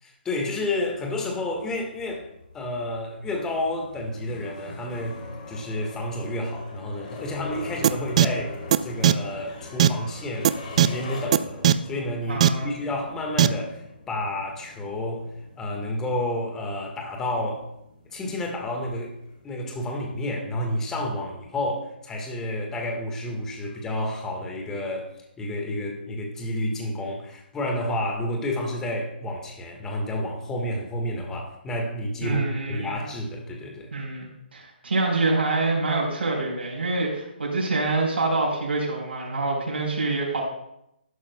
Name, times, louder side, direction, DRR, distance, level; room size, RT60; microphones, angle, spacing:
voice 1, 0.0-2.3 2.5-10.5 10.8-15.2 15.6-17.7 18.1-19.1 19.4-25.1 25.4-33.9, left 1 dB, 10° left, 1 dB, 1.6 m, -30 dB
sound 1, 0.8-20.1, left 2 dB, 45° left, 2.9 m, -43 dB
sound 2, 7.8-7.9 8.2-8.3 8.7-8.8 9.0-9.1 9.8-9.9 10.4-10.5 10.8-10.9 11.3-11.4 11.6-11.7 12.4-12.5 13.4-13.5, right 11 dB, 35° right, 0.4 m, -15 dB
voice 2, 12.3-12.7 32.2-33.1 33.9-40.4, right 3 dB, 80° right, -2 dB, 3.9 m, -26 dB
12.5 x 12.0 x 2.3 m, 0.80 s
hypercardioid pair, 160°, 6 cm